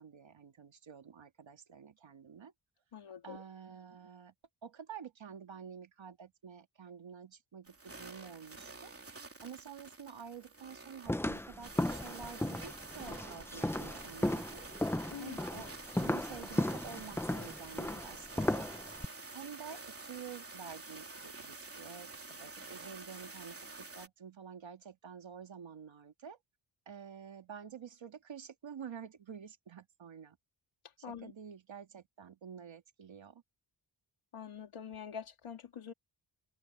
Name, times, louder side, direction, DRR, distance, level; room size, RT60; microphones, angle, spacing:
voice 1, 0.0-2.5 3.2-4.3 4.6-8.9 9.4-14.7 15.2-15.7 16.0-18.7 19.3-26.4 26.9-30.4 31.1-33.4, right 7 dB, 65° right, 2.0 m, -49 dB
voice 2, 2.9-3.4 15.1-15.6 31.0-31.3 34.3-35.9, left 7 dB, 90° left, 2.6 m, -45 dB
sound 1, 7.7-24.1, right 3 dB, 30° right, 3.3 m, -49 dB
sound 2, 11.1-19.1, left 1 dB, 5° left, 0.5 m, -35 dB
wide cardioid pair, 150°, 49 cm